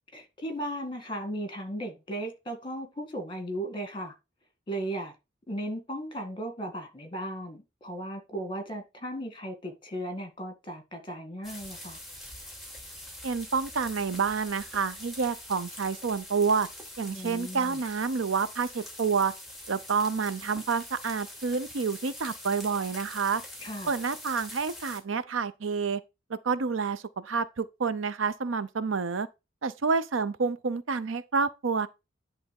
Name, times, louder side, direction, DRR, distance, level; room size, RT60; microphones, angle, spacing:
voice 1, 0.1-4.1 4.7-5.1 5.5-12.0 17.1-17.8 23.6-23.9, right 1 dB, 25° left, 2.1 m, -36 dB
sound 1, 11.4-25.0, left 1 dB, ahead, 2.6 m, -44 dB
voice 2, 13.2-16.7 17.0-19.3 19.7-23.4 23.9-26.0 26.3-29.3 29.6-31.9, right 5 dB, 80° right, 0.6 m, -28 dB
10.5 x 3.4 x 5.3 m
head